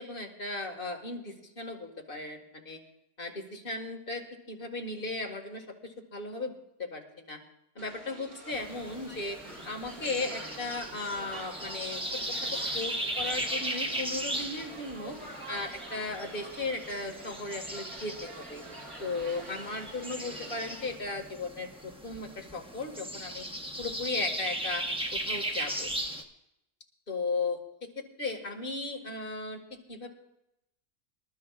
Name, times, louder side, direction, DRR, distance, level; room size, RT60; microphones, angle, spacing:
voice 1, 0.0-2.8 3.2-4.2 4.5-7.4 7.8-9.4 9.7-12.2 12.5-15.2 15.5-18.6 19.0-23.5 23.8-24.9 25.3-25.9 27.1-27.6 28.0-30.1, left 3 dB, 35° left, 1 dB, 1.9 m, -36 dB
sound 1, 7.8-21.0, right 2 dB, 30° right, 1.7 m, -46 dB
sound 2, 8.5-26.2, right 1 dB, 5° right, 0.7 m, -37 dB
26.5 x 12.0 x 2.4 m, 0.83 s
omnidirectional pair, 1.7 m